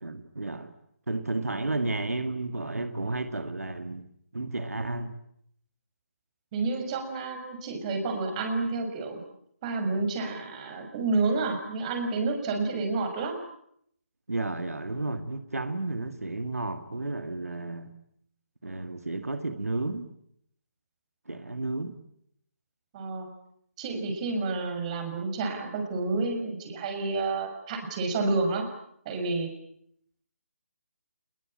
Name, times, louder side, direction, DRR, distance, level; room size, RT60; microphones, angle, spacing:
voice 1, 0.0-0.7 1.1-5.2 14.3-17.9 18.6-20.1 21.3-22.0, right 2 dB, 80° right, 8 dB, 2.3 m, -32 dB
voice 2, 6.5-9.2 9.6-13.4 22.9-23.3 23.8-28.7 29.0-29.5, right 3 dB, 30° right, 5 dB, 6.3 m, -29 dB
27.0 x 21.5 x 8.9 m, 0.72 s
figure-of-eight pair, 150°, 8 cm